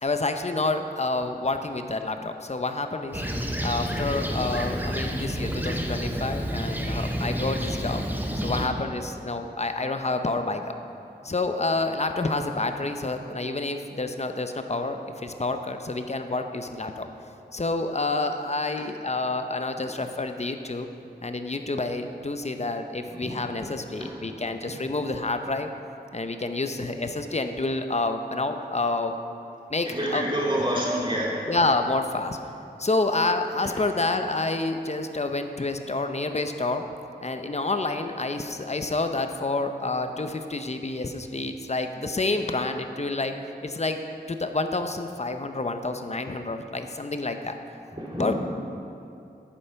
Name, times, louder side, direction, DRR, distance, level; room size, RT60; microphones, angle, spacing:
voice 1, 0.0-3.2 3.6-8.0 8.4-10.6 11.2-17.1 17.5-20.9 21.2-25.7 26.1-29.2 29.7-30.3 31.5-32.4 32.8-36.8 37.2-43.3 43.6-44.0 44.3-47.6 48.2-48.3, left 2 dB, 40° left, 7 dB, 0.7 m, -28 dB
Fixed-wing aircraft airplane, 3.1-8.7, equal, 10° right, 1.0 m, -29 dB
voice 2, 29.9-31.4 47.9-48.3, equal, 25° right, -5 dB, 2.8 m, -27 dB
9.8 x 8.7 x 5.8 m, 2.7 s
wide cardioid pair, 60°, 18 cm